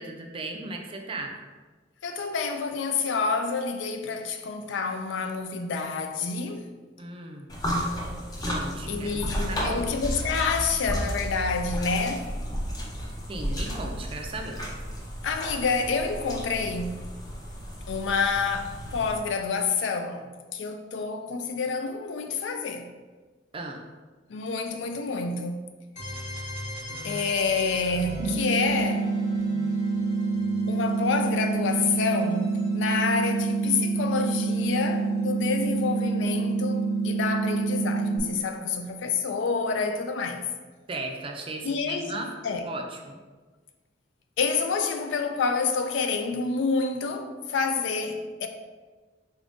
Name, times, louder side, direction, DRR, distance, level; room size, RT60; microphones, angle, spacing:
voice 1, 0.0-1.4 7.0-7.5 8.5-9.8 13.3-14.6 23.5-23.8 40.9-42.3 42.7-43.2, right 2 dB, 30° right, 0.4 m, -36 dB
voice 2, 2.0-6.7 8.9-12.3 15.2-17.1 17.9-22.9 24.3-25.7 27.0-29.1 30.7-40.5 41.6-42.6 44.4-48.5, left 4 dB, 75° left, 0.4 m, -28 dB
sound 1, 7.5-19.2, equal, 20° left, 0.6 m, -33 dB
sound 2, 26.0-35.7, left 1 dB, 40° left, 1.1 m, -41 dB
sound 3, 28.2-38.2, right 4 dB, 90° right, 0.7 m, -27 dB
3.9 x 2.5 x 3.5 m
head